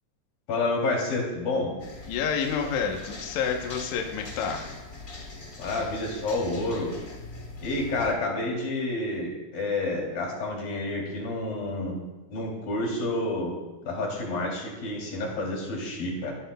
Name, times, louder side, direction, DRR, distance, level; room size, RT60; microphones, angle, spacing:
voice 1, 0.5-1.7 5.6-6.9 7.6-12.0 12.3-13.6 13.8-16.3, left 2 dB, 90° left, -2 dB, 4.8 m, -29 dB
sound 1, 1.8-8.1, left 3 dB, 35° left, 1.3 m, -42 dB
voice 2, 2.1-4.7, left 6 dB, 65° left, 2 dB, 2.1 m, -29 dB
15.5 x 13.0 x 2.3 m, 1.1 s
omnidirectional pair, 3.9 m